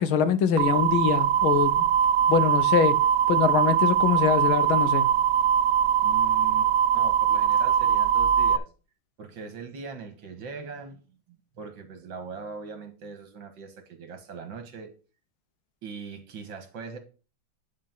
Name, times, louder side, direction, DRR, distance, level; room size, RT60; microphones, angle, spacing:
voice 1, 0.0-1.7 2.3-3.0 3.3-5.1, left 7 dB, 90° left, 1.8 m, -23 dB
sound 1, 0.6-8.6, right 9 dB, 85° right, 0.7 m, -22 dB
voice 2, 6.0-8.7 9.2-11.0 11.3-14.9 15.8-17.0, right 5 dB, 70° right, 2.2 m, -41 dB
10.5 x 4.4 x 5.9 m
omnidirectional pair, 2.2 m